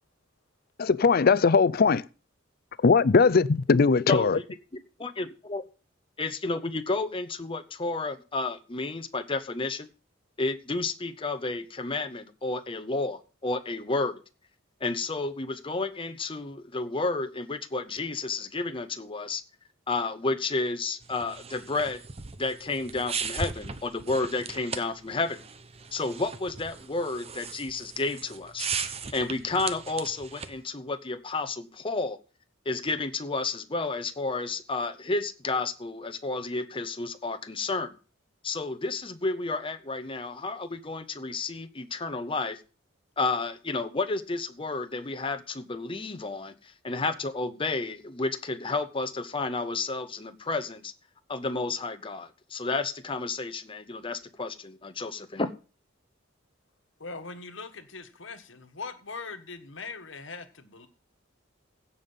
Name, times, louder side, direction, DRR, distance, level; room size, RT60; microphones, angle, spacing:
voice 1, 0.8-2.0 2.8-4.4, left 4 dB, 50° left, 0.5 m, -20 dB
voice 2, 4.1-4.4 4.7-5.6 6.2-9.9 10.4-14.2 14.8-19.4 19.9-22.0 22.4-25.4 25.9-28.7 29.1-32.2 32.7-37.9 38.4-42.6 43.2-46.5 46.8-50.9 51.3-55.5, left 3 dB, 25° left, 0.9 m, -31 dB
sound 1, 21.0-30.6, right 5 dB, 30° right, 0.8 m, -38 dB
voice 3, 57.0-60.9, left 4 dB, 70° left, 1.5 m, -41 dB
16.0 x 5.5 x 5.6 m
head